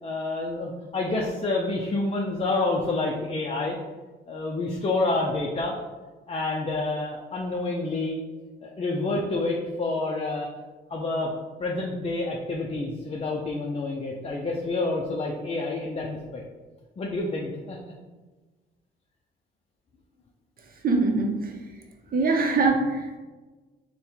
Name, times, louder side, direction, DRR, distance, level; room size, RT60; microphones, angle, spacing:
voice 1, 0.0-3.8 4.3-5.8 6.3-8.2 8.6-10.5 10.9-11.3 11.6-16.4 17.0-17.8, left 2 dB, 30° left, -2 dB, 0.5 m, -28 dB
voice 2, 20.8-21.5 22.1-23.2, right 3 dB, 45° right, 3 dB, 0.7 m, -23 dB
3.5 x 2.2 x 4.4 m, 1.3 s
cardioid pair, 90°, 20 cm